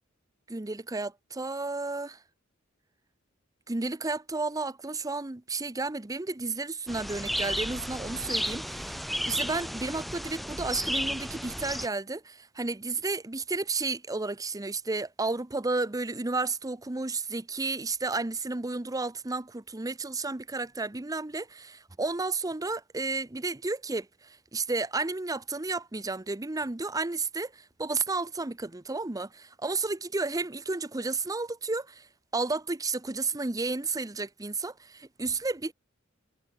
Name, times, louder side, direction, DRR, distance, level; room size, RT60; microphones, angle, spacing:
voice 1, 0.5-2.2 3.7-9.0 9.2-32.1 32.3-35.7, right 3 dB, 20° right, 0.7 m, -32 dB
sound 1, 6.9-11.9, equal, ahead, 0.3 m, -33 dB
head